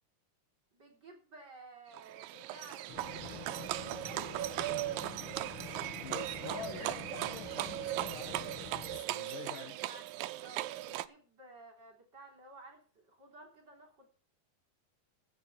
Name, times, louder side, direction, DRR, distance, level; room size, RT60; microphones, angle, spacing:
voice 1, 0.7-4.3 6.4-6.5 9.3-10.0 10.4-14.1, right 2 dB, 30° right, 3.8 m, -55 dB
Livestock farm animals working animals, 1.9-11.1, right 16 dB, 90° right, 2.4 m, -38 dB
sound 1, 2.9-9.0, left 7 dB, 45° left, 2.4 m, -48 dB
voice 2, 6.0-9.8, left 8 dB, 75° left, 2.9 m, -47 dB
16.0 x 7.3 x 5.7 m
omnidirectional pair, 3.9 m